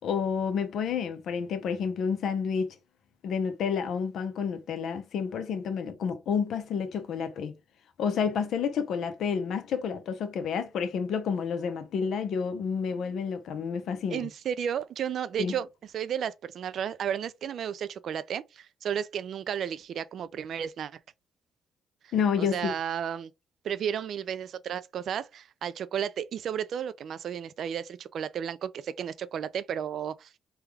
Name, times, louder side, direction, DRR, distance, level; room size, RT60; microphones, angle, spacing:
voice 1, 0.0-2.7 3.2-7.5 8.0-14.3 15.4-15.6 22.1-22.7, left 6 dB, 70° left, 0.7 m, -29 dB
voice 2, 14.1-15.7 15.9-20.9 22.4-23.3 23.6-30.3, right 8 dB, 65° right, 0.3 m, -33 dB
3.4 x 2.3 x 3.2 m
cardioid pair, 90°, 0 cm